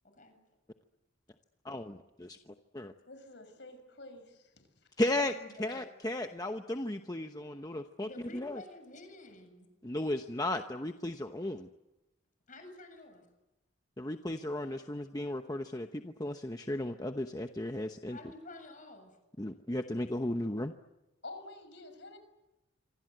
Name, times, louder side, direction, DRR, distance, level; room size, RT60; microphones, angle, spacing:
voice 1, 1.6-2.4 2.7-2.9 5.0-5.3 5.6-8.6 9.8-11.7 14.0-18.2 19.4-20.7, left 1 dB, 20° left, 6 dB, 0.9 m, -35 dB
voice 2, 3.1-5.0 21.2-22.2, left 2 dB, 60° left, 8 dB, 6.2 m, -49 dB
voice 3, 5.2-5.9 8.0-9.7 12.5-13.2 18.0-19.2, left 2 dB, 40° left, 6 dB, 7.2 m, -50 dB
27.0 x 25.5 x 7.9 m, 0.98 s
head